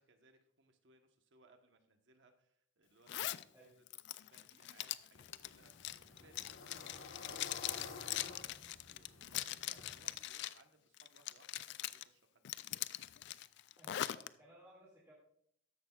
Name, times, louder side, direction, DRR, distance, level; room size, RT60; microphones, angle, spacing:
voice 1, 0.0-3.8 4.1-12.7, right 3 dB, 60° right, 6 dB, 1.1 m, -68 dB
Zipper (clothing), 3.1-3.4 3.9-10.6 11.0-12.0 12.4-14.3, left 13 dB, 60° left, 0.3 m, -42 dB
sound 1, 5.1-10.2, left 3 dB, 85° left, 1.2 m, -52 dB
voice 2, 13.8-15.1, right 1 dB, 15° right, -7 dB, 2.2 m, -60 dB
14.0 x 10.5 x 2.4 m, 0.69 s
head